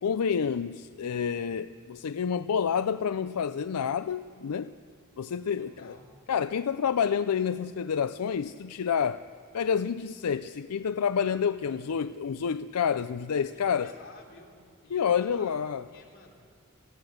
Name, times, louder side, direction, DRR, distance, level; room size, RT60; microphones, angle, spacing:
voice 1, 0.0-4.7 5.2-5.9 6.3-9.2 9.5-13.9 14.9-15.8, left 7 dB, 90° left, 0.5 m, -28 dB
voice 2, 5.2-6.1 11.6-12.1 13.5-16.4, left 3 dB, 60° left, 3.4 m, -52 dB
23.0 x 16.5 x 7.9 m
head